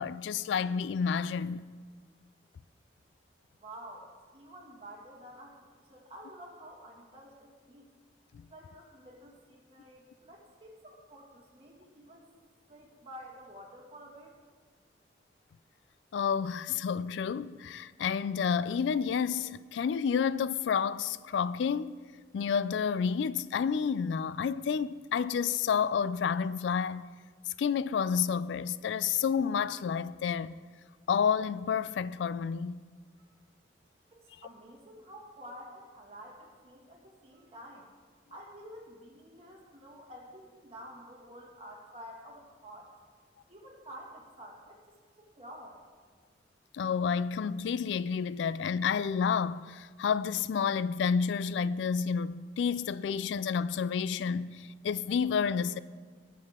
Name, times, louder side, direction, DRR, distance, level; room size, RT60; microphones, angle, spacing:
voice 1, 0.0-1.6 16.1-22.0 22.3-27.1 27.6-30.5 31.1-32.8 46.7-55.8, left 6 dB, 85° left, 0.3 m, -30 dB
voice 2, 3.6-5.6 5.9-7.9 8.5-12.3 12.7-14.3 34.1-37.9 38.3-42.9 43.5-45.8, equal, 35° right, 2.0 m, -50 dB
18.5 x 6.5 x 3.6 m
head